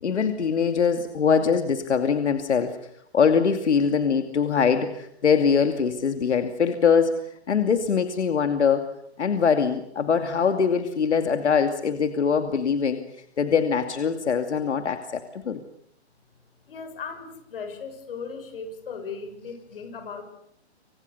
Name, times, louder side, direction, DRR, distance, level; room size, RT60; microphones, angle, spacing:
voice 1, 0.0-2.8 3.1-7.1 7.5-8.8 9.2-15.6, left 6 dB, 85° left, 7 dB, 2.6 m, -23 dB
voice 2, 16.7-20.2, left 5 dB, 55° left, 8 dB, 6.8 m, -37 dB
27.5 x 26.0 x 6.9 m, 0.73 s
hypercardioid pair, 170°, 34 cm